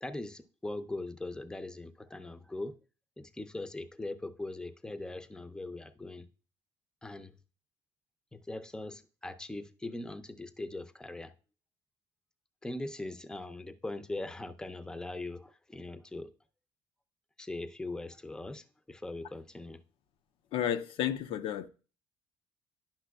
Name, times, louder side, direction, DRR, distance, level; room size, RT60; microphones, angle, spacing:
voice 1, 0.0-2.7 3.2-6.3 7.0-7.3 8.3-11.3 12.6-16.3 17.4-19.8, left 2 dB, 5° left, 0.5 m, -40 dB
voice 2, 20.5-21.7, left 10 dB, 65° left, 0.5 m, -32 dB
10.0 x 5.8 x 2.3 m
supercardioid pair, 70°, 10 cm